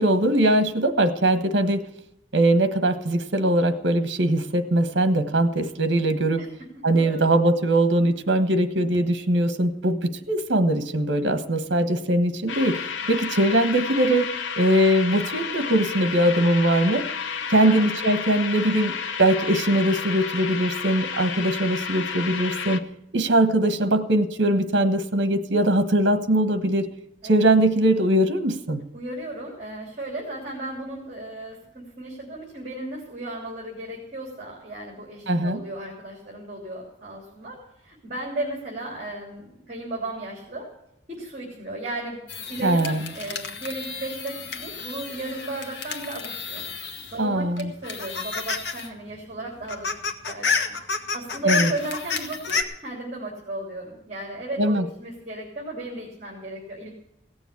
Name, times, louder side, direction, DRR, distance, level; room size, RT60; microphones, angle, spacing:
voice 1, 0.0-1.8 2.3-6.4 6.8-14.3 14.6-17.0 17.5-22.8 23.1-26.9 27.2-28.8 35.3-35.6 42.6-43.1 47.2-47.7 51.4-51.7 54.6-54.8, right 1 dB, 70° right, 10 dB, 1.3 m, -21 dB
voice 2, 6.9-7.2 13.0-13.1 17.5-17.8 27.2-27.3 28.9-37.6 37.8-40.7 41.1-46.6 47.1-49.9 50.3-50.8 51.1-56.9, right 1 dB, 35° right, -2 dB, 3.3 m, -35 dB
sound 1, 12.5-22.8, left 6 dB, 85° left, 0.9 m, -31 dB
sound 2, 42.3-47.2 47.6-48.9 49.2-49.3 49.5-52.6, left 5 dB, 65° left, 1.4 m, -30 dB
17.0 x 7.1 x 8.4 m, 0.82 s
head